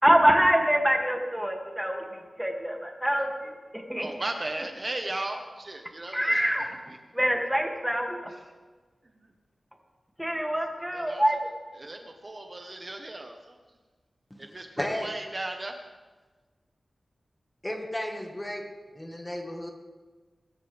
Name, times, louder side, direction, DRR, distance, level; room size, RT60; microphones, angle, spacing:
voice 1, 0.0-3.3 3.7-4.1 6.1-6.6 7.1-8.2 10.2-11.5, equal, 5° right, 1 dB, 2.7 m, -25 dB
voice 2, 4.0-7.0 8.3-8.5 9.0-9.3 10.4-10.5 10.9-11.2 11.7-13.6 14.4-15.7, right 2 dB, 35° right, 4 dB, 1.4 m, -37 dB
voice 3, 14.8-15.1 17.6-19.7, left 1 dB, 15° left, 3 dB, 1.9 m, -34 dB
24.0 x 13.5 x 3.7 m, 1.3 s
wide cardioid pair, 80°, 0 cm